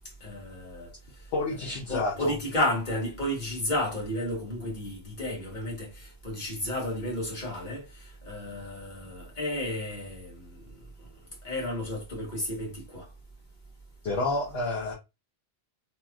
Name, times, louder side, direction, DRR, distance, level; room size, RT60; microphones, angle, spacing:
voice 1, 0.2-0.9 1.9-10.6 11.4-13.1, left 1 dB, 45° left, 1.4 m, -32 dB
voice 2, 1.3-2.3 14.0-14.9, left 2 dB, 75° left, 1.1 m, -29 dB
3.1 x 2.8 x 2.3 m
omnidirectional pair, 1.1 m